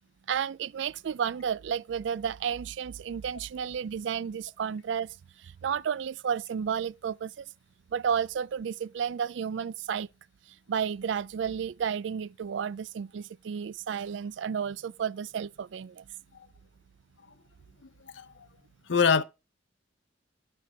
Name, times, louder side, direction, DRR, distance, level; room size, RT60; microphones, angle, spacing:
voice 1, 0.3-7.5 7.9-10.1 10.7-16.0, right 7 dB, 70° right, 0.4 m, -32 dB
voice 2, 18.0-18.5 18.9-19.2, left 6 dB, 75° left, 0.7 m, -25 dB
10.0 x 4.5 x 5.2 m
head